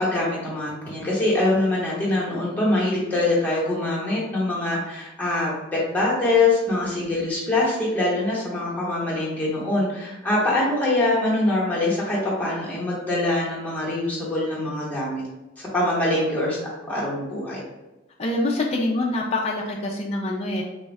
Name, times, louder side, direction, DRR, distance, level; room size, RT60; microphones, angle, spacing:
voice 1, 0.0-5.5 5.9-15.2 15.6-16.6 16.8-17.6, left 2 dB, 10° left, -7 dB, 1.0 m, -23 dB
voice 2, 18.2-20.6, left 2 dB, 30° left, -1 dB, 0.4 m, -25 dB
3.4 x 2.3 x 3.1 m, 1.0 s
head